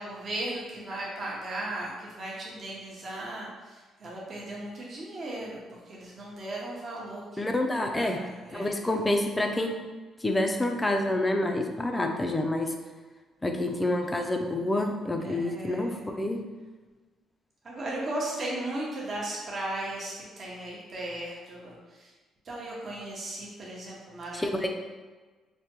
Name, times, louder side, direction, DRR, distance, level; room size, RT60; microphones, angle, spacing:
voice 1, 0.0-7.5 7.9-9.0 15.2-16.1 17.6-22.1 22.4-24.7, right 1 dB, 40° right, -4 dB, 0.7 m, -37 dB
voice 2, 7.4-8.2 8.5-9.8 10.2-12.7 13.4-16.4 24.3-24.7, left 1 dB, 15° left, 3 dB, 0.4 m, -28 dB
3.4 x 2.1 x 2.9 m, 1.3 s
cardioid pair, 105°, 0 cm